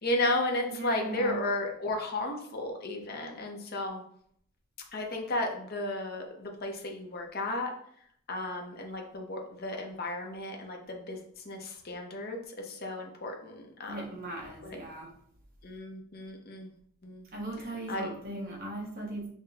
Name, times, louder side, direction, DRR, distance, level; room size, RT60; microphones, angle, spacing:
voice 1, 0.0-4.0 4.9-7.7 8.3-14.0 14.6-14.8 15.6-16.7 17.0-17.3 17.9-18.1, left 1 dB, 45° left, 2 dB, 0.7 m, -34 dB
voice 2, 0.7-1.5 13.9-15.1 17.3-19.3, right 2 dB, 40° right, -2 dB, 1.1 m, -38 dB
5.7 x 2.2 x 3.4 m, 0.66 s
head